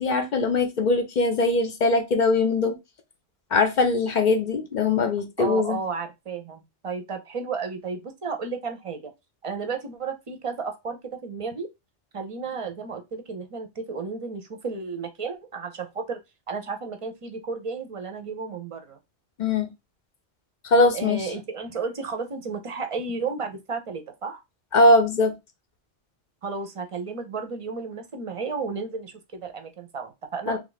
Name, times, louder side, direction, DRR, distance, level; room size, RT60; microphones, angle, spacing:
voice 1, 0.0-2.7 3.5-5.8 19.4-19.7 20.6-21.3 24.7-25.3 30.5-30.6, left 2 dB, 55° left, 0.6 m, -21 dB
voice 2, 5.4-9.1 9.4-11.7 12.1-16.2 16.5-19.0 20.9-24.4 26.4-30.6, right 4 dB, 40° right, 0.6 m, -33 dB
3.2 x 2.5 x 3.9 m
omnidirectional pair, 1.1 m